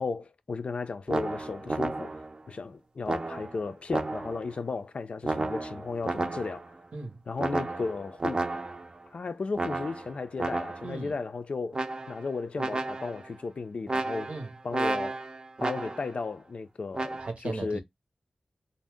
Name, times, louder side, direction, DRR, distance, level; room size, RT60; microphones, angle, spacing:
voice 1, 0.0-6.7 7.3-8.4 9.1-14.3 14.6-15.2 15.6-17.8, left 4 dB, 65° left, 0.4 m, -35 dB
sound 1, 1.1-2.4 3.1-4.5 5.2-6.7 7.4-9.0 9.5-11.0 11.7-12.3 12.6-13.3 13.9-16.2 16.9-17.3, right 2 dB, 45° right, 0.5 m, -32 dB
voice 2, 6.9-7.2 10.8-11.1 14.3-14.5 17.2-17.8, right 3 dB, 70° right, 0.8 m, -36 dB
2.6 x 2.0 x 3.4 m
cardioid pair, 45°, 2 cm